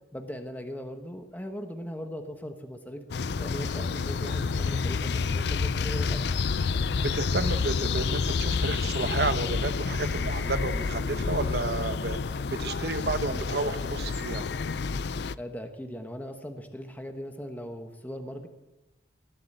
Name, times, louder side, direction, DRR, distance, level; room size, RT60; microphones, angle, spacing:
voice 1, 0.1-3.0 3.4-6.2 15.4-18.5, equal, 10° left, 5 dB, 1.2 m, -39 dB
sound 1, 3.1-15.3, left 4 dB, 70° left, 0.5 m, -29 dB
voice 2, 7.0-12.2 12.6-14.4, right 3 dB, 65° right, 11 dB, 1.0 m, -31 dB
19.5 x 7.9 x 9.1 m, 1.0 s
head